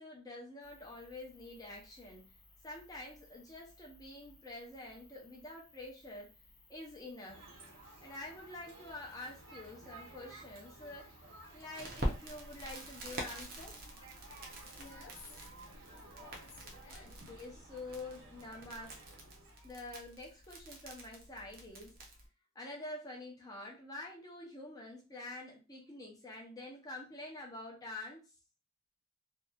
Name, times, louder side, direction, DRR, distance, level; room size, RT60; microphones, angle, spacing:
voice 1, 0.0-2.3 2.6-6.3 6.7-7.4 8.0-11.1 11.5-13.8 17.0-19.2 19.6-22.1 22.5-28.2, left 2 dB, 20° left, -2 dB, 0.6 m, -47 dB
sound 1, 0.6-16.9, left 2 dB, 55° left, 0.9 m, -63 dB
sound 2, 7.3-19.7, right 2 dB, 85° right, 1.1 m, -55 dB
Crackle, 11.7-22.3, right 1 dB, 45° right, 0.6 m, -45 dB
voice 2, 14.8-15.5 15.9-17.2, left 4 dB, 85° left, 2 dB, 0.7 m, -56 dB
2.7 x 2.3 x 2.3 m, 0.31 s
head